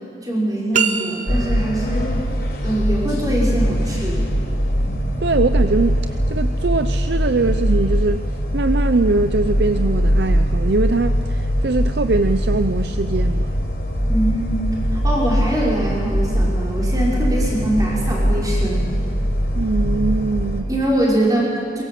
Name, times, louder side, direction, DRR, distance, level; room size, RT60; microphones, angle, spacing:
voice 1, 0.2-2.2 2.6-4.3 4.8-5.0 14.1-14.6 14.9-18.9 20.7-21.8, right 1 dB, 20° right, -4 dB, 5.3 m, -23 dB
sound 1, 0.7-1.8, right 7 dB, 45° right, 1.0 m, -23 dB
sound 2, 1.3-20.6, equal, 55° left, 4.3 m, -21 dB
voice 2, 5.2-8.3 8.5-13.5 19.5-20.7, right 3 dB, 65° right, 10 dB, 0.6 m, -22 dB
23.0 x 22.0 x 7.7 m, 2.4 s
head